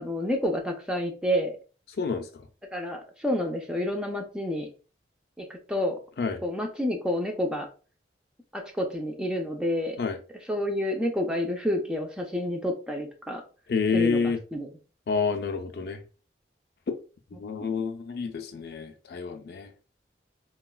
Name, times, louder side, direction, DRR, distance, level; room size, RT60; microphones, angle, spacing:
voice 1, 0.0-1.6 2.7-4.7 5.4-6.0 6.4-7.7 8.5-10.0 10.5-13.4 13.9-14.7, left 1 dB, 5° right, 0.4 m, -29 dB
voice 2, 2.0-2.4 6.2-6.4 10.0-10.2 13.7-14.4 15.1-16.0 17.3-19.7, left 5 dB, 60° left, 0.4 m, -28 dB
3.9 x 2.2 x 2.2 m
head